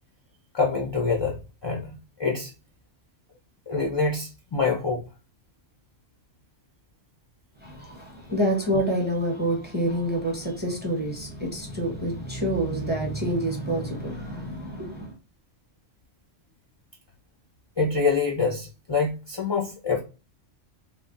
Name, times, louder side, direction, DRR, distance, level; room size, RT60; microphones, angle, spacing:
voice 1, 0.5-2.5 3.7-5.0 17.8-20.0, left 4 dB, 45° left, 0.3 m, -26 dB
voice 2, 7.6-15.1, right 1 dB, 10° right, 0.6 m, -27 dB
3.5 x 2.1 x 2.4 m
omnidirectional pair, 1.2 m